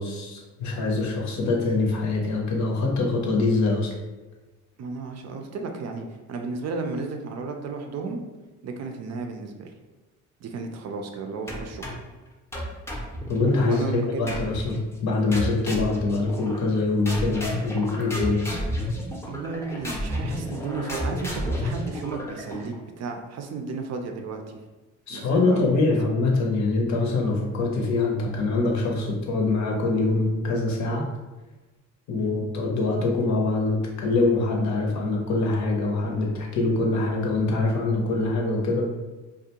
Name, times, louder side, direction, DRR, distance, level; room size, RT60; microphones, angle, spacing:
voice 1, 0.0-3.9 13.3-18.5 25.1-31.0 32.1-38.8, left 3 dB, 65° left, 0 dB, 0.7 m, -24 dB
voice 2, 4.8-8.2 8.6-9.7 10.4-12.0 13.7-14.2 19.3-24.6 25.1-26.1 32.2-32.4, right 4 dB, 60° right, 4 dB, 0.5 m, -34 dB
sound 1, 11.5-12.1 12.5-13.7 14.3-14.8 15.3-16.8 17.1-22.8, equal, 10° left, 0.5 m, -32 dB
2.4 x 2.2 x 2.8 m, 1.2 s
cardioid pair, 90°, 30 cm